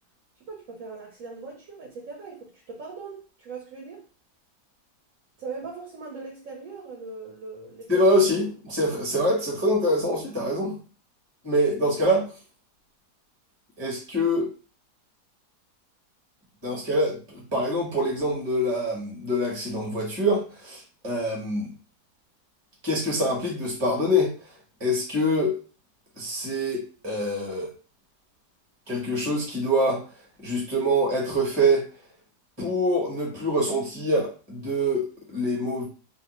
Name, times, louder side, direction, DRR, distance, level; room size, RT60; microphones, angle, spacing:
voice 1, 0.4-4.0 5.4-8.1, right 4 dB, 65° right, -3 dB, 1.0 m, -40 dB
voice 2, 7.9-10.7 11.4-12.2 13.8-14.5 16.6-21.7 22.8-24.3 24.8-25.6 26.2-27.7 28.9-30.0 30.4-31.9 32.6-35.8, equal, 20° right, -3 dB, 0.9 m, -25 dB
2.7 x 2.1 x 3.0 m, 0.37 s
omnidirectional pair, 1.7 m